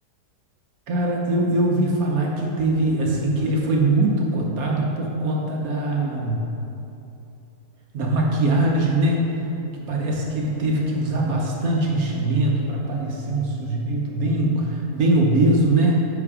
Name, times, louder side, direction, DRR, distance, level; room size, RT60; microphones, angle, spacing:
voice 1, 0.9-6.4 7.9-9.2 9.9-16.0, right 2 dB, 60° right, -2 dB, 1.0 m, -22 dB
5.7 x 5.2 x 4.8 m, 2.9 s
omnidirectional pair, 2.0 m